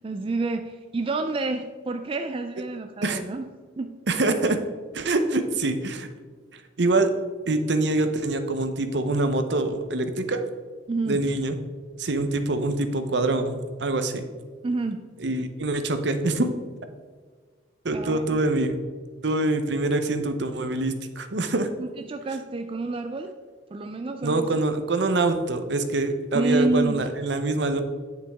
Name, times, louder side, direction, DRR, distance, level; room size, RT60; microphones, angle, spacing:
voice 1, 0.0-3.5 3.8-4.0 10.9-11.2 14.6-15.1 17.9-18.7 21.8-23.4 23.7-24.6 26.3-27.1, right 3 dB, 30° right, 7 dB, 0.3 m, -29 dB
voice 2, 4.1-4.6 4.9-6.1 6.5-7.1 7.5-10.4 11.1-11.5 12.0-14.2 15.2-16.5 17.8-18.8 19.2-21.7 24.2-27.8, right 2 dB, 60° right, 8 dB, 0.8 m, -25 dB
8.8 x 7.4 x 3.5 m, 1.5 s
head